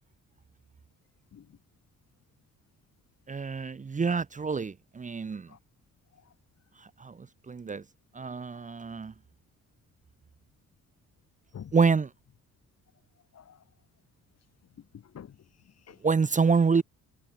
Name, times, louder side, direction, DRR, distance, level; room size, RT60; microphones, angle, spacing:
voice 1, 3.3-5.5 7.0-7.8 8.1-9.1 11.7-12.1 16.0-16.8, right 5 dB, 25° right, 0.9 m, -27 dB
voice 2, 13.3-13.6 14.8-15.4 15.6-16.0, left 8 dB, 55° left, 6.6 m, -48 dB
cardioid pair, 90°, 30 cm